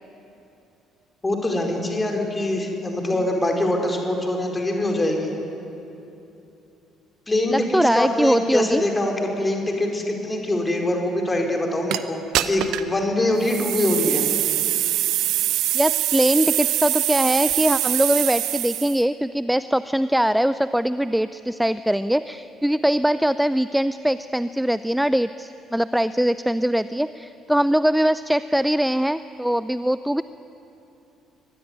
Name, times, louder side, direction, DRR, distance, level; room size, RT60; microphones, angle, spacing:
voice 1, 1.2-5.3 7.3-14.2, left 1 dB, 20° left, 2 dB, 4.9 m, -23 dB
voice 2, 7.5-8.8 14.1-14.2 15.7-30.2, equal, 5° right, 14 dB, 0.5 m, -22 dB
sound 1, 11.9-12.0 12.3-12.9 13.4-19.0, right 14 dB, 55° right, 0.9 m, -23 dB
23.5 x 19.0 x 9.5 m, 2.8 s
figure-of-eight pair, 50°, 0 cm